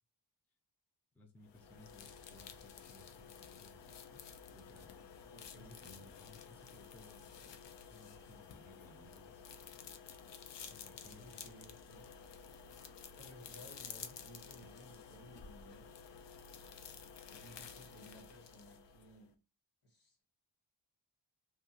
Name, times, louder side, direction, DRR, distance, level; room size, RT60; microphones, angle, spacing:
voice 1, 1.1-4.2 4.5-4.9 5.6-7.6 7.9-9.4 10.7-11.5, left 2 dB, 5° left, 0.4 m, -61 dB
sound 1, 1.4-19.3, left 6 dB, 80° left, 0.5 m, -52 dB
voice 2, 5.2-5.7 11.2-12.0 13.2-15.9 17.3-19.3 19.8-20.2, right 1 dB, 55° left, 1.3 m, -58 dB
2.7 x 2.4 x 2.8 m
wide cardioid pair, 105°, 42 cm